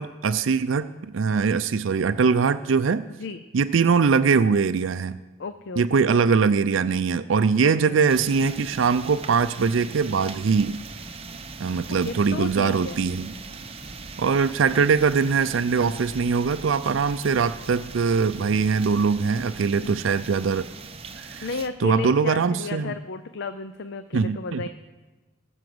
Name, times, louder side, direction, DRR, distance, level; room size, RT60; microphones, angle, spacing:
voice 1, 0.0-3.0 3.5-5.2 5.8-10.8 11.6-13.3 14.2-20.6 21.2-21.5 21.8-22.9 24.1-24.7, right 5 dB, 70° right, 13 dB, 0.4 m, -22 dB
voice 2, 5.4-6.1 7.6-8.0 12.0-13.0 19.8-20.0 21.4-24.7, left 4 dB, 60° left, 11 dB, 0.5 m, -33 dB
sound 1, 8.1-21.7, right 4 dB, 30° right, 0.8 m, -40 dB
18.5 x 6.2 x 7.8 m, 1.2 s
head